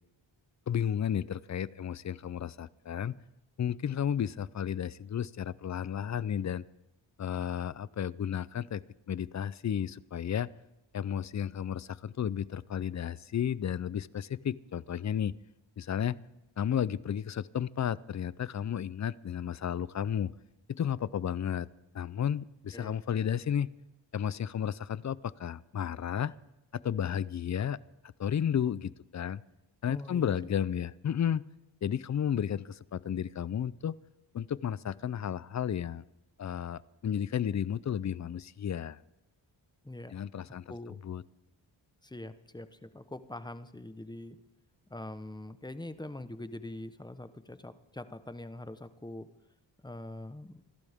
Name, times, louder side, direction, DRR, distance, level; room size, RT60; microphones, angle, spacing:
voice 1, 0.7-3.1 3.6-6.6 7.2-10.5 10.9-15.4 15.8-16.2 16.6-20.3 20.7-21.7 21.9-23.7 24.1-26.3 26.7-27.8 28.2-29.4 29.8-31.4 31.8-34.0 34.3-36.0 36.4-39.0 40.1-40.6 41.0-41.2, left 9 dB, 40° left, 20 dB, 0.5 m, -33 dB
voice 2, 29.9-30.3 39.8-40.2 40.7-41.0 42.0-44.4 44.9-49.3 49.8-50.6, left 1 dB, 10° left, 11 dB, 1.0 m, -43 dB
27.0 x 12.0 x 3.6 m, 0.97 s
cardioid pair, 75°, 46 cm